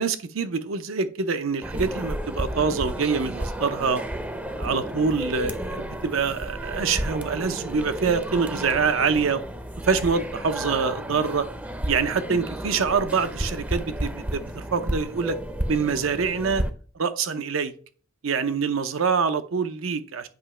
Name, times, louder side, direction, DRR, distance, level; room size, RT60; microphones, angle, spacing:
voice 1, 0.0-4.0 4.6-9.4 9.8-11.5 11.9-15.4 15.7-16.6 17.0-17.7 18.2-20.3, right 5 dB, 80° right, 0.6 m, -25 dB
sound 1, 1.6-16.7, right 1 dB, 10° right, 0.5 m, -32 dB
7.9 x 3.0 x 5.4 m
head